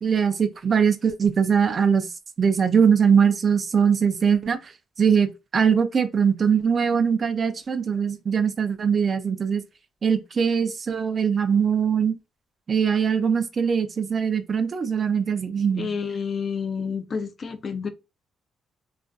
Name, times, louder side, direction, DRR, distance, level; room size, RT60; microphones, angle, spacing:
voice 1, 0.0-2.1 2.4-4.6 5.0-5.3 5.5-9.6 10.0-12.1 12.7-15.9, right 6 dB, 40° right, 0.4 m, -21 dB
voice 2, 15.8-17.9, left 6 dB, 45° left, 0.4 m, -29 dB
2.4 x 2.3 x 2.3 m
cardioid pair, 90°, 0 cm